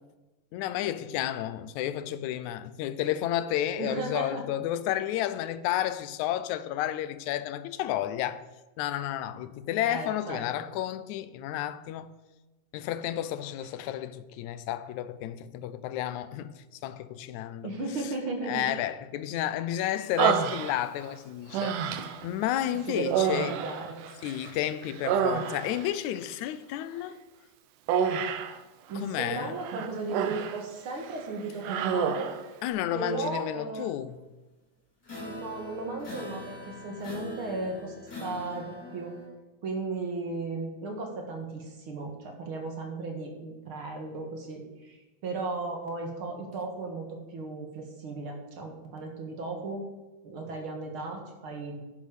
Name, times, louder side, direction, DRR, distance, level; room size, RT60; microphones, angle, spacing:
voice 1, 0.5-8.4 8.8-12.1 12.7-16.5 16.8-17.7 18.5-23.5 24.2-27.2 29.0-29.5 32.6-34.2, left 12 dB, 80° left, 1.9 m, -31 dB
voice 2, 3.8-4.4 9.9-10.5 17.6-18.7 22.9-24.0 28.9-32.3 32.9-33.9 35.2-37.9 38.2-39.1 39.6-49.9 50.2-51.8, right 3 dB, 50° right, 2.2 m, -35 dB
Human voice, 20.2-21.1 21.5-22.3 23.1-24.5 24.8-25.9 27.9-28.6 29.6-30.6 31.0-31.2 31.6-32.4, right 7 dB, 85° right, 2.4 m, -28 dB
sound 1, 35.0-39.3, left 2 dB, 35° left, 5.0 m, -42 dB
10.5 x 10.5 x 5.0 m
omnidirectional pair, 3.6 m